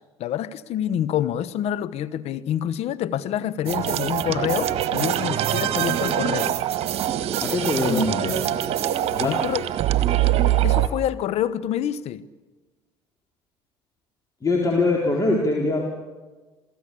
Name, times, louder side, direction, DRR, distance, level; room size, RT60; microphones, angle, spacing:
voice 1, 0.2-6.6 9.2-9.7 10.6-12.2, left 10 dB, 55° left, 1.1 m, -27 dB
sound 1, 3.7-10.9, right 12 dB, 50° right, 1.5 m, -23 dB
voice 2, 7.4-8.4 9.1-9.4 14.4-15.8, left 2 dB, 25° left, 4.4 m, -22 dB
28.5 x 17.0 x 8.6 m
figure-of-eight pair, 60°, 13 cm